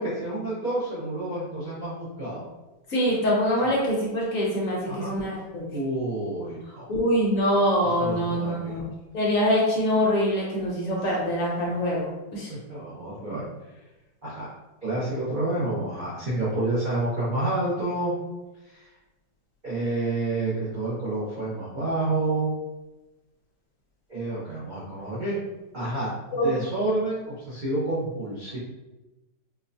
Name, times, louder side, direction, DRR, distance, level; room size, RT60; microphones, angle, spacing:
voice 1, 0.0-2.4 3.6-3.7 4.9-5.2 5.7-6.8 7.9-8.8 12.5-13.4 14.2-14.5 14.8-18.1 18.6-18.8 19.6-22.5 24.1-25.4 25.7-28.6, right 2 dB, 60° right, -8 dB, 0.5 m, -29 dB
voice 2, 2.9-5.7 6.9-8.8 9.1-12.5 26.3-26.5, equal, 55° left, -4 dB, 1.0 m, -24 dB
4.4 x 2.2 x 2.6 m, 1.1 s
omnidirectional pair, 2.0 m